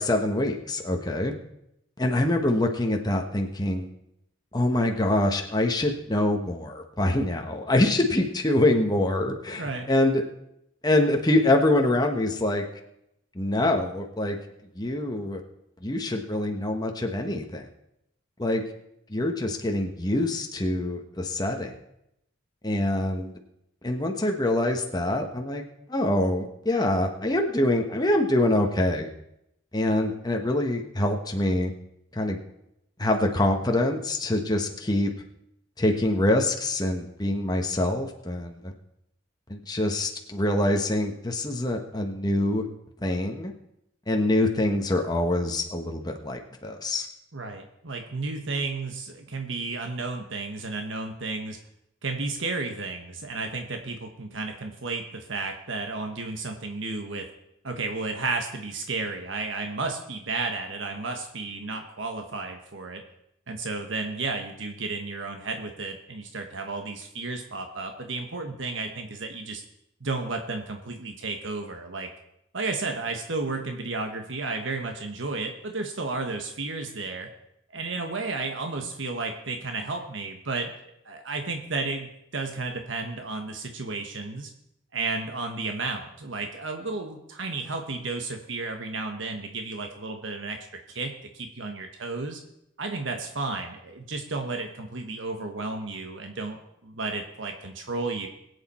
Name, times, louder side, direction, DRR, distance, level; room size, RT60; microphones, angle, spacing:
voice 1, 0.0-1.3 2.0-3.9 4.5-10.2 10.8-12.6 13.3-14.4 14.7-15.4 15.8-17.7 18.4-18.6 19.1-21.7 22.6-23.3 23.8-25.6 25.9-29.1 29.7-31.7 32.1-32.4 33.0-35.1 35.8-38.7 39.5-42.7 43.0-43.5 44.1-47.1, left 1 dB, 20° left, 3 dB, 1.1 m, -25 dB
voice 2, 9.6-9.9 47.3-51.6 52.0-57.3 57.6-63.0 63.5-69.6 70.0-72.1 72.5-77.3 77.7-80.7 81.0-84.5 84.9-90.6 90.9-92.4 92.8-98.3, right 3 dB, 65° right, 4 dB, 1.2 m, -32 dB
21.5 x 8.3 x 4.3 m, 0.81 s
head